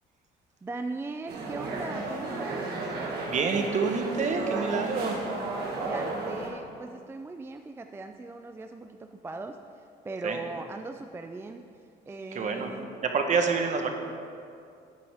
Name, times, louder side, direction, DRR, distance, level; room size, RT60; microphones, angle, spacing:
voice 1, 0.6-2.7 5.8-12.9, right 3 dB, 15° right, 6 dB, 0.3 m, -39 dB
sound 1, 1.3-6.5, right 3 dB, 70° right, 1.9 m, -33 dB
voice 2, 3.2-5.2 10.2-10.4 12.3-12.7 13.0-13.9, right 5 dB, 45° right, 4 dB, 1.1 m, -27 dB
12.0 x 8.2 x 3.5 m, 2.4 s
cardioid pair, 110°, 17 cm